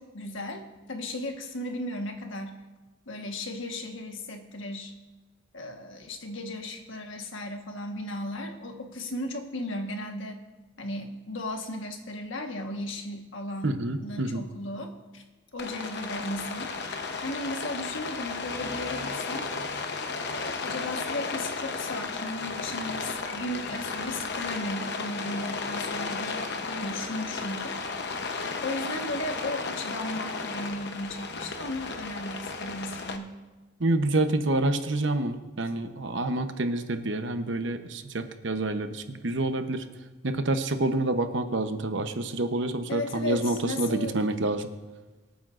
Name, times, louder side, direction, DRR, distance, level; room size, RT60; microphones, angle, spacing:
voice 1, 0.0-2.6 3.1-4.9 5.5-10.4 10.8-15.2 15.5-16.7 17.2-19.5 20.1-27.8 28.6-33.3 42.9-44.2, left 1 dB, 75° left, 3 dB, 1.4 m, -35 dB
voice 2, 13.6-14.4 33.8-39.9 40.2-44.7, right 2 dB, 65° right, 8 dB, 0.9 m, -28 dB
Rain, 15.6-33.2, left 4 dB, 55° left, 0.9 m, -34 dB
24.5 x 9.0 x 2.5 m, 1.2 s
head